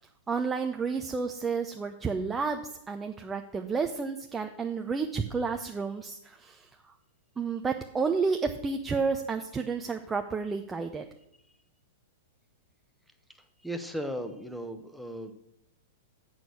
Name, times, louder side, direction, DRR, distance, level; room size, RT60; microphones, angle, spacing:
voice 1, 0.3-2.6 2.9-6.9 7.4-11.0, right 5 dB, 15° right, 5 dB, 0.6 m, -31 dB
voice 2, 13.6-15.3, equal, ahead, 7 dB, 1.0 m, -36 dB
7.5 x 6.3 x 7.0 m, 0.77 s
hypercardioid pair, 105°, 0 cm